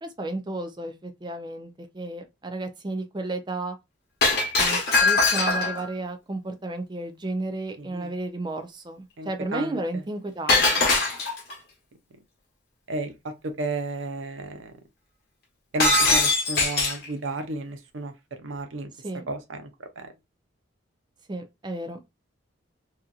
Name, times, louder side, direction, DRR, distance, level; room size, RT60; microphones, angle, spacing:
voice 1, 0.0-3.8 4.6-10.9 19.0-19.3 21.3-22.0, right 2 dB, 25° right, 0.4 m, -33 dB
Shatter, 4.2-5.9 10.5-11.5 15.8-17.1, left 3 dB, 55° left, 1.1 m, -21 dB
voice 2, 7.8-8.1 9.2-9.8 12.9-13.1 13.4-14.7 15.7-18.1 18.4-18.9 19.3-19.6 20.0-20.1, right 2 dB, 85° right, 0.6 m, -32 dB
2.8 x 2.5 x 2.3 m
head